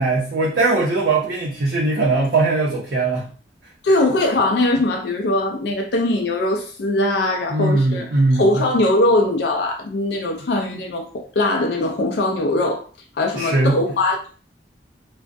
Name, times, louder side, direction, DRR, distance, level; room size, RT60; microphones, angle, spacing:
voice 1, 0.0-3.3 7.5-8.6 13.3-13.8, right 2 dB, 80° right, 0.6 m, -20 dB
voice 2, 3.8-12.8 13.2-14.3, left 2 dB, 70° left, 0.4 m, -21 dB
2.3 x 2.1 x 2.5 m
head